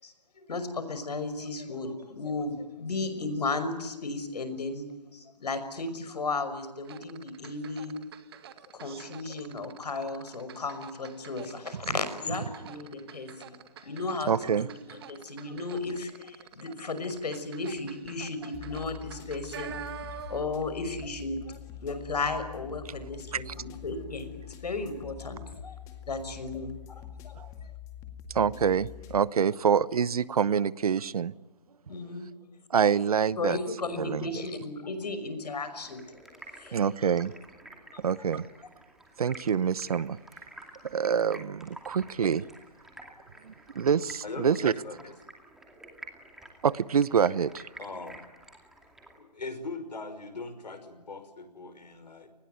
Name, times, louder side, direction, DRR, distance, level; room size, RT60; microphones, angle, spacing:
voice 1, 0.0-4.8 5.1-7.9 8.7-13.6 13.8-14.3 14.6-24.3 24.6-25.8 26.1-27.3 31.9-32.3 33.4-36.0 36.6-36.8, left 3 dB, 70° left, 11 dB, 5.9 m, -35 dB
sound 1, 6.8-20.6 20.9-21.1, right 9 dB, 35° right, 2.0 m, -47 dB
voice 2, 14.3-14.7 23.3-23.5 27.4-27.5 28.3-31.3 32.7-33.6 34.0-34.3 36.7-37.3 38.0-38.5 39.2-40.2 40.8-42.4 43.4-44.7 46.6-47.6, right 7 dB, 60° right, 19 dB, 1.0 m, -26 dB
sound 2, 18.5-29.2, left 8 dB, 15° left, 2.1 m, -45 dB
Stream, 35.8-49.2, right 1 dB, ahead, 2.4 m, -50 dB
voice 3, 44.2-45.1 47.8-48.2 49.2-52.3, left 3 dB, 85° left, 10 dB, 5.6 m, -40 dB
28.5 x 20.5 x 9.5 m, 1.0 s
hypercardioid pair, 160°, 21 cm